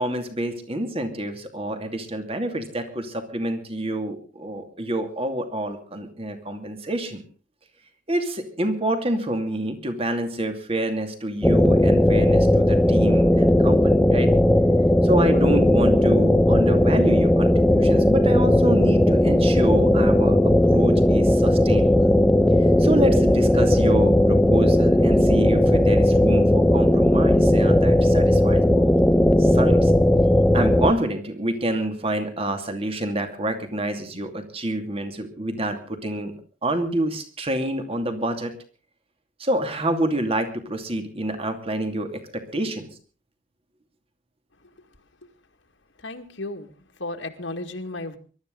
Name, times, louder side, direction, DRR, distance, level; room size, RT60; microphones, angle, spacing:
voice 1, 0.0-7.2 8.1-14.3 15.0-20.4 20.7-22.1 22.6-28.9 29.4-29.9 30.5-36.3 36.6-38.5 39.4-42.9, right 1 dB, 30° right, 7 dB, 2.6 m, -27 dB
sound 1, 11.4-30.9, left 1 dB, 5° left, 0.7 m, -17 dB
voice 2, 46.0-46.7 47.0-48.2, left 2 dB, 70° left, 4 dB, 2.1 m, -33 dB
23.5 x 12.5 x 3.9 m, 0.39 s
head